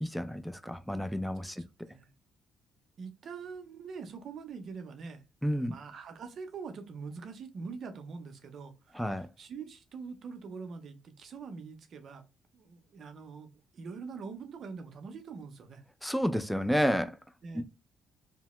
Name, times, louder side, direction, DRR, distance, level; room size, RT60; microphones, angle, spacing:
voice 1, 0.0-1.6 5.4-5.7 8.9-9.3 16.0-17.2 17.5-17.6, equal, ahead, 0.3 m, -30 dB
voice 2, 1.5-2.1 3.0-5.2 5.6-12.2 12.5-15.8 17.4-17.6, right 5 dB, 60° right, 0.6 m, -44 dB
2.8 x 2.1 x 2.9 m
cardioid pair, 90°, 0 cm